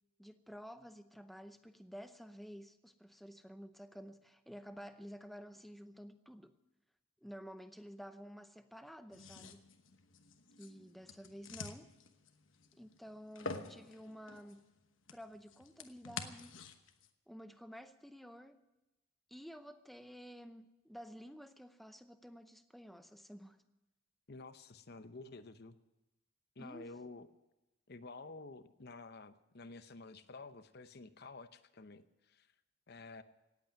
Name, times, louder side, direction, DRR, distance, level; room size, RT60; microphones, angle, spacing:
voice 1, 0.2-6.5 7.2-9.7 10.6-11.9 12.7-14.7 15.1-16.6 17.3-18.6 19.3-23.6 26.6-26.9, equal, ahead, 0.7 m, -52 dB
sound 1, 9.1-17.1, left 4 dB, 65° left, 1.1 m, -49 dB
voice 2, 24.3-25.8 26.6-27.3 27.9-32.5 32.9-33.2, left 3 dB, 50° left, 0.8 m, -51 dB
17.5 x 8.4 x 9.3 m
head